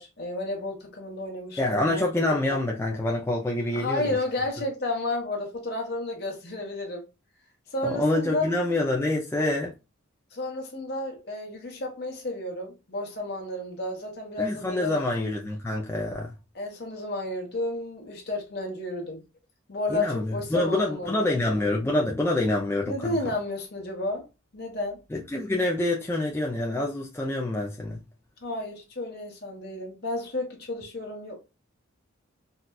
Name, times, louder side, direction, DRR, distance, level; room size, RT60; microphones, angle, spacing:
voice 1, 0.0-2.1 3.7-7.0 7.7-8.5 10.3-15.1 16.5-19.2 19.7-21.4 22.8-24.3 24.5-25.0 28.4-31.3, left 2 dB, 50° left, 1.1 m, -32 dB
voice 2, 1.6-4.1 7.8-9.7 14.4-16.3 19.9-23.2 25.1-28.0, left 2 dB, 10° left, 0.3 m, -26 dB
4.1 x 2.2 x 2.3 m
head